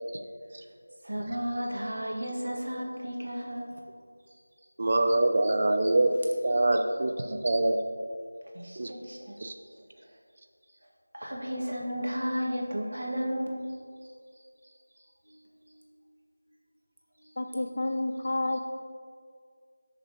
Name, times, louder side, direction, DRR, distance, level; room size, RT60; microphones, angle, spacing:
voice 1, 1.0-3.7 6.1-6.2 8.5-9.4 11.1-13.7 15.3-15.4 17.2-17.3, equal, 75° right, -1 dB, 2.0 m, -33 dB
voice 2, 4.8-6.1 6.4-7.8 8.8-8.9 9.4-9.5, right 2 dB, 30° right, 6 dB, 0.4 m, -24 dB
voice 3, 17.4-18.6, left 2 dB, 40° left, 6 dB, 0.4 m, -30 dB
15.0 x 6.5 x 3.0 m, 2.1 s
figure-of-eight pair, 180°, 0 cm